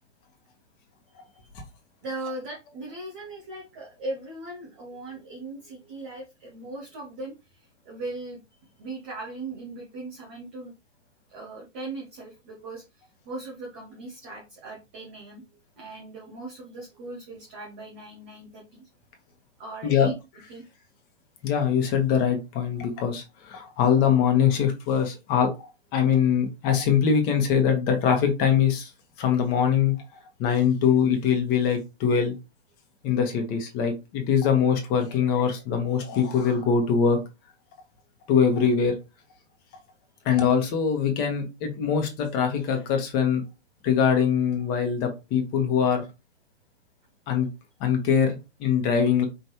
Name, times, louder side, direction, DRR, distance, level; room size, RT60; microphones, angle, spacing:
voice 1, 2.0-8.4 8.8-10.7 11.3-15.4 15.8-18.9 19.6-20.2 20.5-20.6, right 2 dB, 10° right, -2 dB, 0.4 m, -39 dB
voice 2, 21.4-28.9 29.2-29.9 30.4-32.3 33.0-37.2 38.3-38.9 40.2-43.4 43.8-46.0 47.3-47.5 47.8-49.2, left 7 dB, 25° left, 4 dB, 1.2 m, -23 dB
5.2 x 3.1 x 2.8 m, 0.26 s
hypercardioid pair, 145°, 36 cm